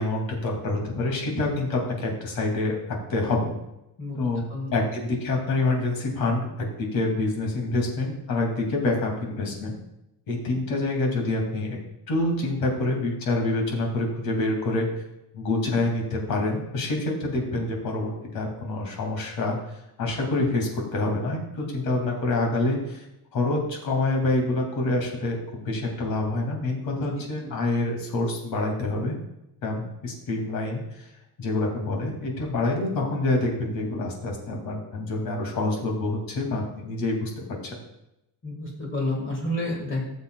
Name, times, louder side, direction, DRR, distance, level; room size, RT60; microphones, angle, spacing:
voice 1, 0.0-3.5 4.2-4.4 4.7-9.7 10.3-11.8 12.1-14.9 15.3-19.6 20.0-23.0 23.3-29.1 29.6-31.1 31.4-37.8, left 2 dB, 55° left, 1 dB, 2.5 m, -27 dB
voice 2, 38.4-40.0, left 1 dB, 30° left, -1 dB, 1.9 m, -29 dB
17.0 x 7.4 x 2.3 m, 0.87 s
cardioid pair, 180°, 40 cm